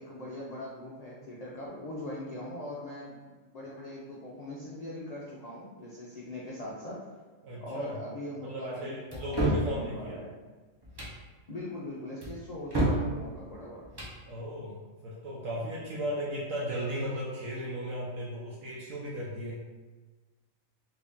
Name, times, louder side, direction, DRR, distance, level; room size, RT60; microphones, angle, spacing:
voice 1, 0.0-3.2 3.5-7.0 7.6-10.3 11.5-13.8, left 1 dB, 80° left, -5 dB, 0.3 m, -41 dB
voice 2, 7.4-8.0 8.4-10.2 14.3-19.6, equal, 75° right, -5 dB, 1.0 m, -36 dB
sound 1, 9.1-9.7 10.8-11.2 12.2-13.1 13.8-14.2, right 1 dB, 30° right, 0.4 m, -29 dB
3.0 x 2.6 x 3.5 m, 1.3 s
omnidirectional pair, 1.4 m